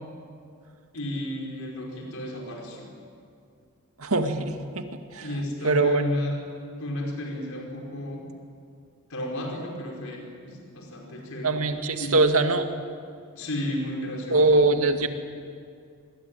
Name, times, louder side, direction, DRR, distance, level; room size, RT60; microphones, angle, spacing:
voice 1, 0.9-2.9 5.2-6.4 6.8-8.3 9.1-11.6 12.0-12.2 13.3-14.6, left 1 dB, 70° left, 0 dB, 5.1 m, -33 dB
voice 2, 4.0-5.3 5.6-6.1 11.4-12.7 14.3-15.1, right 2 dB, 80° right, 6 dB, 2.1 m, -22 dB
26.0 x 22.0 x 9.1 m, 2.3 s
head